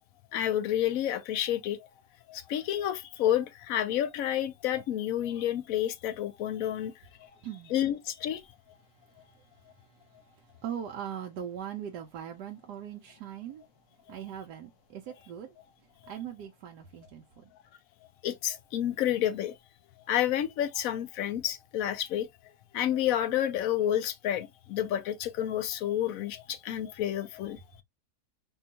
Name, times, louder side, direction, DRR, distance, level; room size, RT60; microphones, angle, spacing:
voice 1, 0.3-1.8 2.3-6.9 7.7-8.4 18.2-19.6 20.1-22.3 22.7-27.8, left 11 dB, 70° left, 0.9 m, -30 dB
voice 2, 7.3-7.7 8.8-13.6 14.1-15.6 16.1-17.5, right 9 dB, 85° right, 1.2 m, -41 dB
4.3 x 2.3 x 2.8 m
omnidirectional pair, 1.7 m